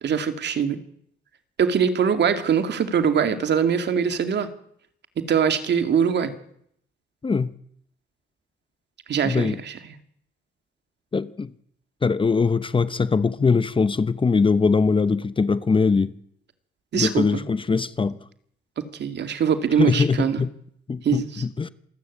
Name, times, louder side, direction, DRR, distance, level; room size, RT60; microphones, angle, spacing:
voice 1, 0.0-0.8 1.6-4.5 5.2-6.3 9.1-9.8 16.9-17.4 18.8-20.4 21.0-21.4, right 7 dB, 60° right, 2.4 m, -22 dB
voice 2, 7.2-7.5 9.2-9.6 11.1-11.5 12.0-16.1 16.9-18.2 19.8-20.5 20.9-21.7, left 4 dB, 25° left, 0.9 m, -22 dB
27.0 x 12.5 x 8.4 m
cardioid pair, 90°, 20 cm